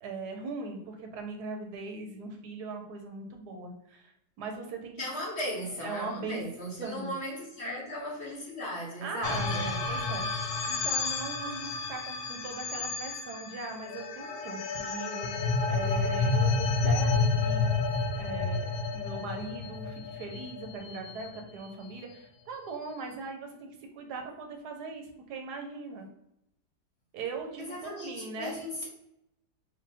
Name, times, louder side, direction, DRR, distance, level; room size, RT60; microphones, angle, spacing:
voice 1, 0.0-4.1 4.4-5.0 5.8-6.4 6.8-7.1 9.0-15.3 15.7-17.7 18.1-23.7 23.9-26.1 27.1-28.6, right 3 dB, 75° right, 4 dB, 1.3 m, -39 dB
voice 2, 5.0-9.7 27.6-28.9, left 1 dB, 45° left, -2 dB, 1.1 m, -37 dB
sound 1, 9.2-21.7, left 4 dB, 65° left, 0.7 m, -30 dB
4.9 x 2.7 x 3.4 m, 0.83 s
omnidirectional pair, 1.8 m